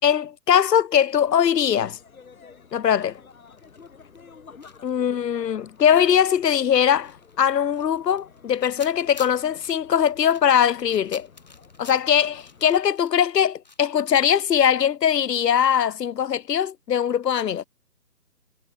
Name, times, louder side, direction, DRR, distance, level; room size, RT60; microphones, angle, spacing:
voice 1, 0.0-2.0 2.7-3.2 4.8-11.3 11.8-17.6, left 9 dB, 75° left, 0.7 m, -21 dB
sound 1, 1.1-12.9, left 5 dB, 55° left, 1.4 m, -51 dB
sound 2, 2.5-4.3 4.6-13.8, left 3 dB, 25° left, 1.3 m, -49 dB
hypercardioid pair, 175°, 49 cm